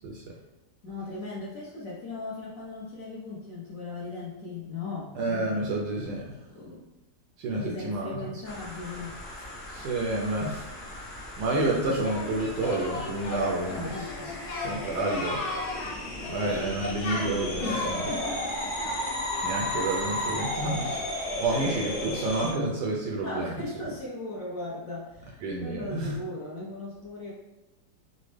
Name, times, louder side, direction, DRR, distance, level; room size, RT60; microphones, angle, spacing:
voice 1, 0.8-5.1 6.5-6.9 7.5-9.5 13.7-14.4 17.6-18.9 21.5-22.2 23.2-27.3, left 2 dB, 55° left, -7 dB, 1.0 m, -38 dB
voice 2, 5.1-6.4 7.4-8.2 9.7-11.0 11.4-13.9 14.6-15.4 16.3-18.0 19.4-21.1 21.4-23.5 25.4-26.2, right 2 dB, 70° right, -1 dB, 1.0 m, -29 dB
sound 1, 8.4-22.5, left 1 dB, 30° left, 0.5 m, -35 dB
Singing, 12.0-20.4, left 3 dB, 90° left, 1.7 m, -37 dB
4.1 x 2.1 x 3.1 m, 1.0 s
omnidirectional pair, 2.1 m